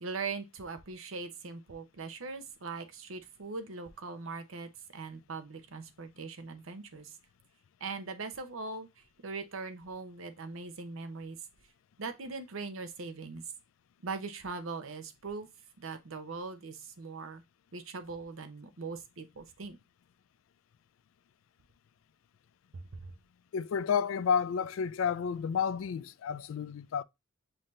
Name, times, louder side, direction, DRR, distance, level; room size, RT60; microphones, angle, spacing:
voice 1, 0.0-7.2 7.8-8.9 9.2-11.4 12.0-13.4 14.0-15.5 15.8-17.4 17.7-19.8 22.7-23.1, right 4 dB, 85° right, 0.8 m, -41 dB
voice 2, 23.5-27.0, left 7 dB, 75° left, 0.3 m, -31 dB
5.6 x 2.8 x 3.1 m
head